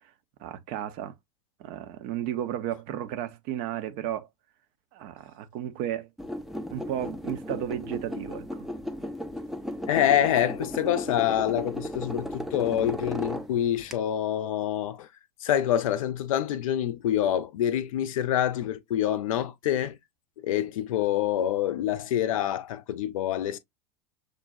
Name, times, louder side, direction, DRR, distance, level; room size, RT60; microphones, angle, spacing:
voice 1, 0.4-1.1 1.6-4.3 4.9-6.1 6.7-8.4, right 11 dB, 40° right, 0.6 m, -33 dB
sound 1, 6.2-13.9, equal, ahead, 0.5 m, -35 dB
voice 2, 9.9-15.1 15.4-20.0 20.4-23.6, left 11 dB, 55° left, 0.5 m, -26 dB
6.4 x 2.2 x 2.6 m
figure-of-eight pair, 85°, 21 cm